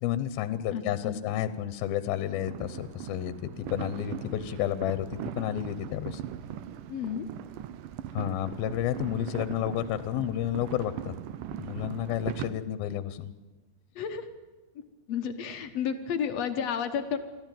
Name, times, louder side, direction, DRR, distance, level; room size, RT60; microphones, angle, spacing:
voice 1, 0.0-6.2 8.1-11.1 11.6-13.3, left 11 dB, 80° left, 13 dB, 2.7 m, -31 dB
voice 2, 0.7-1.2 6.9-7.3 14.0-14.3 15.1-17.2, left 7 dB, 60° left, 7 dB, 1.9 m, -31 dB
sound 1, 2.3-12.5, right 11 dB, 75° right, 2.1 m, -40 dB
23.5 x 14.5 x 9.2 m, 1.2 s
omnidirectional pair, 4.3 m